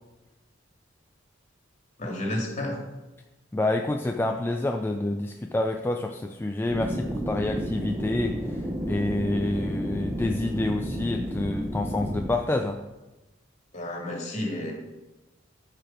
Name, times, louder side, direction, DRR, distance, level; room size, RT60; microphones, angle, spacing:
voice 1, 2.0-2.8 13.7-14.7, left 1 dB, 35° left, 0 dB, 2.2 m, -31 dB
voice 2, 3.5-8.6 8.9-12.8, left 2 dB, 10° left, 3 dB, 0.4 m, -28 dB
sound 1, 6.7-12.3, equal, 15° right, 0.8 m, -31 dB
13.5 x 5.2 x 4.4 m, 1.1 s
head